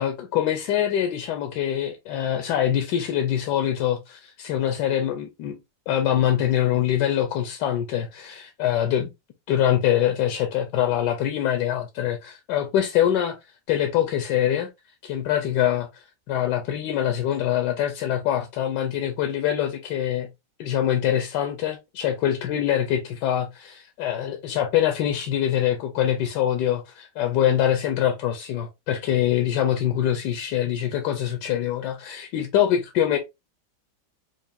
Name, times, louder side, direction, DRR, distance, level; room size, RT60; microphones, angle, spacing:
voice 1, 0.0-5.6 5.9-9.0 9.5-13.4 13.7-14.7 15.0-20.3 20.6-33.2, left 10 dB, 85° left, 1.2 m, -24 dB
4.7 x 2.5 x 2.5 m
omnidirectional pair, 1.8 m